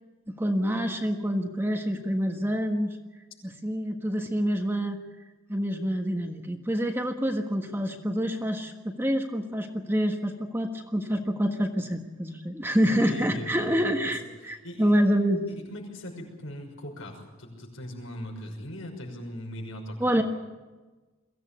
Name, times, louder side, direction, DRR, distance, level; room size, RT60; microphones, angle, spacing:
voice 1, 0.3-3.0 3.4-5.0 5.5-15.5 20.0-20.2, equal, 10° right, 3 dB, 1.4 m, -27 dB
voice 2, 13.0-14.1 14.4-15.0 15.5-20.2, left 1 dB, 75° left, 1 dB, 6.1 m, -40 dB
23.0 x 16.0 x 8.8 m, 1.2 s
head